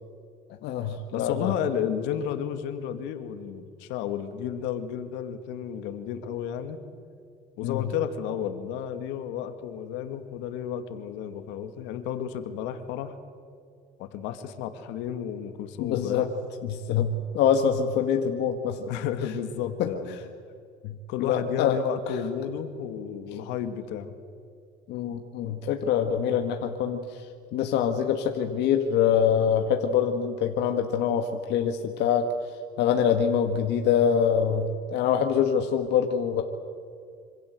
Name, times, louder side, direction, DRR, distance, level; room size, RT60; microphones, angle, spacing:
voice 1, 0.6-1.5 7.6-7.9 15.8-16.3 16.6-18.8 19.8-19.9 20.8-20.9 21.2-21.8 24.9-32.3 32.8-36.4, left 8 dB, 65° left, 5 dB, 1.8 m, -25 dB
voice 2, 1.1-6.8 7.6-13.2 14.0-16.3 18.8-20.2 21.1-24.1, left 9 dB, 85° left, 8 dB, 2.4 m, -32 dB
26.5 x 26.5 x 8.0 m, 2.3 s
cardioid pair, 140°, 19 cm